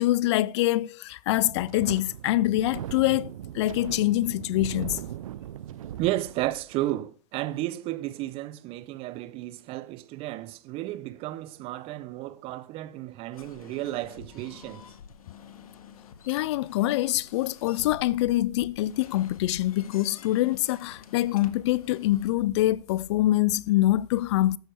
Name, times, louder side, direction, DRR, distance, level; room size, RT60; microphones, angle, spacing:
voice 1, 0.0-5.0 16.3-24.6, left 15 dB, 55° left, 0.5 m, -25 dB
Wind, 1.3-6.9, right 11 dB, 75° right, 0.7 m, -39 dB
voice 2, 6.0-14.9, right 16 dB, 30° right, 0.6 m, -33 dB
sound 1, 13.3-22.3, left 7 dB, 90° left, 1.6 m, -48 dB
13.0 x 8.3 x 4.7 m
hypercardioid pair, 135°, 18 cm